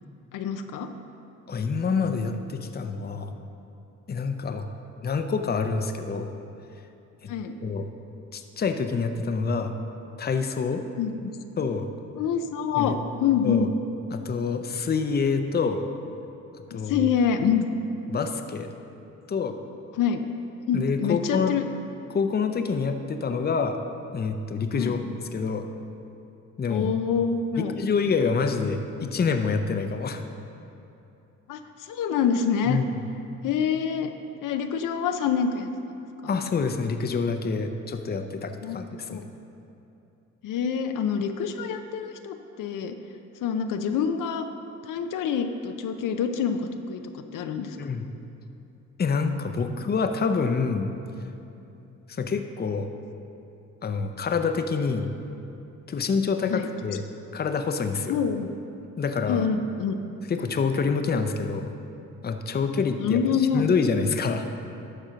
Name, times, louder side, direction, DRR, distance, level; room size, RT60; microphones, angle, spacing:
voice 1, 0.3-0.9 7.3-7.5 11.0-11.2 12.2-13.7 16.7-17.7 19.9-20.2 20.7-21.6 24.8-25.0 26.7-27.8 31.5-32.8 33.4-34.1 34.4-36.4 38.6-38.8 39.1-39.2 40.4-43.0 43.4-44.5 44.8-47.8 56.5-56.7 58.1-58.5 59.3-60.0 63.0-63.7, left 7 dB, 80° left, 7 dB, 0.6 m, -26 dB
voice 2, 1.5-3.3 4.1-4.7 5.0-6.3 7.2-7.3 7.6-7.9 8.3-9.7 10.2-10.8 11.6-11.9 12.8-12.9 13.4-13.7 14.1-15.9 16.7-17.1 18.1-18.7 19.3-19.6 20.7-21.5 22.1-23.8 24.1-25.0 25.3-25.7 26.6-26.9 27.6-30.2 32.7-32.9 36.3-39.3 47.8-48.1 49.0-50.9 52.1-52.9 53.8-55.1 55.9-57.0 57.3-58.2 59.0-59.5 60.3-61.7 62.2-64.5, left 5 dB, 30° left, 7 dB, 0.6 m, -27 dB
11.5 x 4.4 x 6.2 m, 2.8 s
cardioid pair, 90°, 31 cm